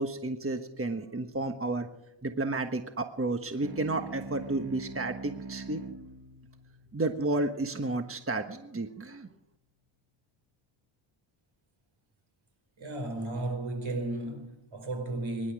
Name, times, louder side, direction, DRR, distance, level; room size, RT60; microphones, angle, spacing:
voice 1, 0.0-1.9 2.2-5.8 6.9-9.3, right 2 dB, 30° right, 1.3 m, -32 dB
sound 1, 3.6-8.5, right 3 dB, 50° right, 1.9 m, -45 dB
voice 2, 12.8-15.5, right 2 dB, 80° right, 4.7 m, -34 dB
24.0 x 11.5 x 4.9 m
cardioid pair, 60°, 47 cm